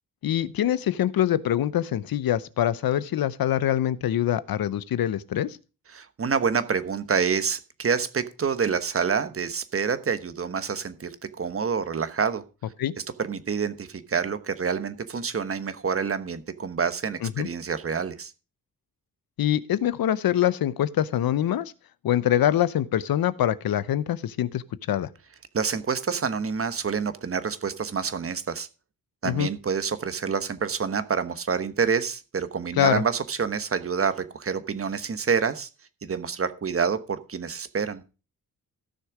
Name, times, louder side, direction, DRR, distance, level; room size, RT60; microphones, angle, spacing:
voice 1, 0.2-5.6 12.8-12.9 17.2-17.5 19.4-21.7 22.0-24.6 24.9-25.1 29.2-29.5 32.8-33.0, left 11 dB, 80° left, 0.8 m, -24 dB
voice 2, 5.9-12.4 13.2-18.3 25.5-28.7 29.2-35.7 36.0-38.0, right 6 dB, 40° right, 1.2 m, -27 dB
15.5 x 6.6 x 4.9 m
wide cardioid pair, 115°, 35 cm